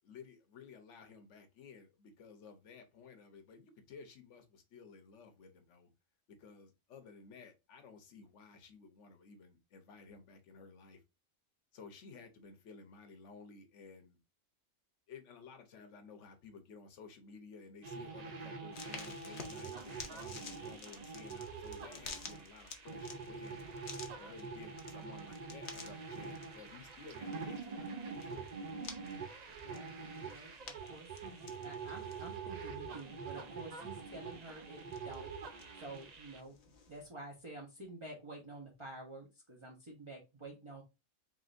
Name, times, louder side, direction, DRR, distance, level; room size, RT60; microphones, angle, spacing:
voice 1, 0.0-5.9 6.3-11.0 11.7-14.2 15.1-23.9 24.2-28.5, left 5 dB, 65° left, 1.1 m, -55 dB
sound 1, 17.8-36.4, right 5 dB, 55° right, 0.4 m, -45 dB
sound 2, 18.7-37.1, left 5 dB, 50° left, 0.7 m, -53 dB
voice 2, 29.5-35.3 35.8-36.5 36.9-40.8, right 2 dB, 25° right, 0.9 m, -50 dB
3.8 x 3.8 x 2.5 m
omnidirectional pair, 1.4 m